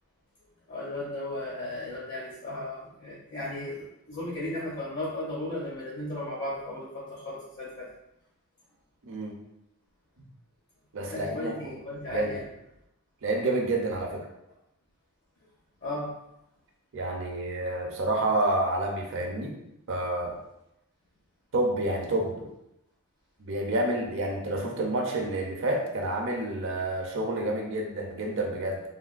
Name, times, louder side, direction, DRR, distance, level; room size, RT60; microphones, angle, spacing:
voice 1, 0.7-7.9 11.1-12.4 15.8-16.1, left 1 dB, 55° left, -6 dB, 0.7 m, -35 dB
voice 2, 10.9-11.7 12.1-12.4 13.2-14.2 16.9-19.6 19.9-20.4 21.5-22.5 23.4-28.8, right 2 dB, 60° right, 1 dB, 0.5 m, -29 dB
3.3 x 2.2 x 2.4 m, 0.85 s
head